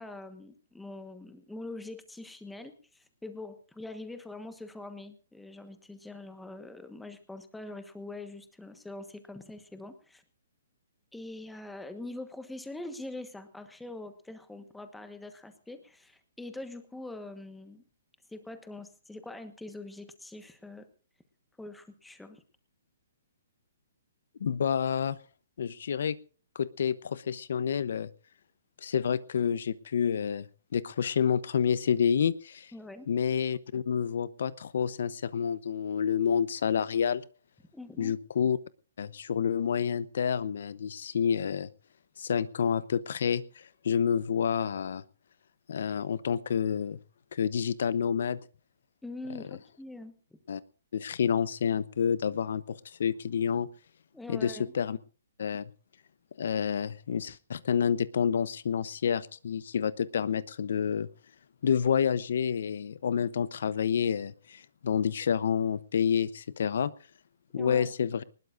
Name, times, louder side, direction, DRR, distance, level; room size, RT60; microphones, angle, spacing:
voice 1, 0.0-10.2 11.1-17.8 18.3-20.9 21.6-22.4 32.7-33.1 37.7-38.1 49.0-50.1 54.1-54.7 67.6-67.9, left 2 dB, 5° left, 9 dB, 1.3 m, -43 dB
voice 2, 24.4-25.2 25.6-26.2 26.5-28.1 28.8-30.5 30.7-32.7 33.1-37.2 38.0-38.6 39.0-41.7 42.2-45.0 45.7-47.0 47.3-48.4 50.5-50.6 50.9-53.7 54.3-55.0 55.4-55.7 56.4-61.1 61.6-66.9 67.5-68.2, left 7 dB, 60° left, 18 dB, 0.8 m, -29 dB
22.5 x 20.0 x 2.5 m, 0.39 s
hypercardioid pair, 175°, 0 cm